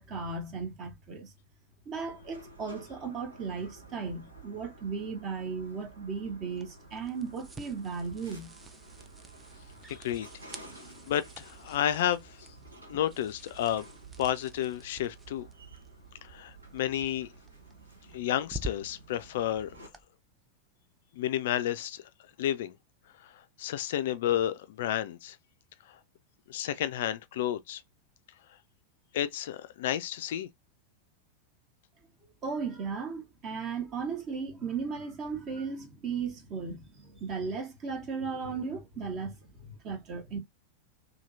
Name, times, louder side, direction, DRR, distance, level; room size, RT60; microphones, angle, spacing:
voice 1, 0.0-1.3 1.9-8.5 32.4-40.4, right 5 dB, 35° right, 1.0 m, -36 dB
sound 1, 1.9-19.9, right 3 dB, 80° right, 1.0 m, -52 dB
sound 2, 6.5-20.0, right 1 dB, 15° right, 0.4 m, -49 dB
voice 2, 9.9-10.3 11.1-12.5 12.9-13.9 14.2-15.5 16.2-17.3 18.1-19.7 21.1-22.0 22.4-22.7 23.2-25.4 25.9-26.0 26.5-27.8 29.1-30.5, left 11 dB, 55° left, 0.3 m, -31 dB
2.8 x 2.7 x 2.5 m
figure-of-eight pair, 90°, 0 cm